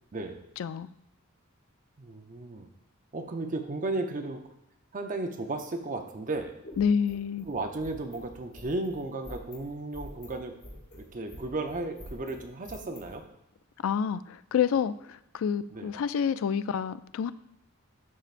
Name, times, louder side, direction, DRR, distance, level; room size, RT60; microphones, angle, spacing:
voice 1, 0.6-0.9 6.8-7.5 13.8-17.3, left 7 dB, 70° left, 14 dB, 0.3 m, -28 dB
voice 2, 2.0-2.7 3.1-4.4 4.9-6.5 7.5-10.6 10.9-13.2 15.7-15.9, right 2 dB, 35° right, 5 dB, 0.6 m, -34 dB
sound 1, 6.3-13.1, left 1 dB, 50° left, 2.2 m, -47 dB
12.0 x 4.5 x 2.5 m, 0.81 s
head